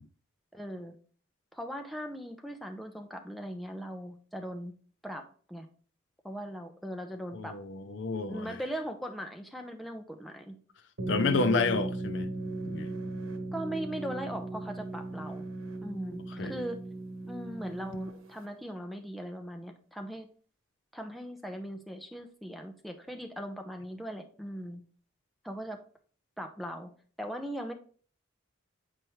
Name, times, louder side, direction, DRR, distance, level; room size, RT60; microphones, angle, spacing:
voice 1, 0.5-0.9 1.5-4.7 5.0-5.7 6.2-7.5 8.3-10.6 11.2-11.7 13.5-15.4 15.8-16.8 17.2-20.3 20.9-24.8 25.4-25.8 26.4-26.9 27.2-27.7, equal, ahead, 0.6 m, -39 dB
voice 2, 7.3-8.6 11.1-12.3 12.7-12.9 16.4-16.5, left 3 dB, 60° left, 0.5 m, -30 dB
sound 1, 11.0-18.5, right 2 dB, 85° right, 1.1 m, -37 dB
7.7 x 4.5 x 3.1 m
head